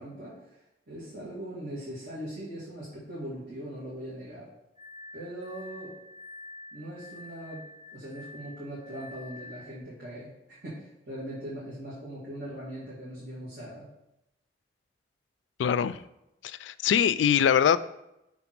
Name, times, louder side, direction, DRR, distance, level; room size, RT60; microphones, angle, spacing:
voice 1, 0.0-4.5 5.1-5.9 6.7-10.3 10.6-13.9, right 1 dB, 55° right, -8 dB, 2.0 m, -40 dB
Glass, 4.8-9.8, left 2 dB, 40° right, 1.4 m, -47 dB
voice 2, 15.6-16.0 16.4-17.8, left 8 dB, 85° left, 14 dB, 0.3 m, -23 dB
6.0 x 3.5 x 5.9 m, 0.88 s
head